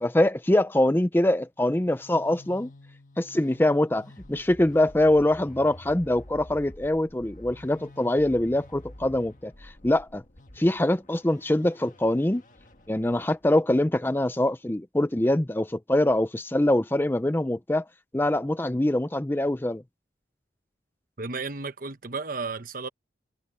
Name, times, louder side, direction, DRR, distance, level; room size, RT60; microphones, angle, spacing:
voice 1, 0.0-2.7 3.2-10.2 10.6-12.4 12.9-17.8 18.1-19.8, left 1 dB, 10° left, 0.5 m, -24 dB
sound 1, 1.6-13.4, left 1 dB, 45° left, 1.6 m, -49 dB
voice 2, 21.2-22.9, right 4 dB, 50° right, 1.2 m, -33 dB
head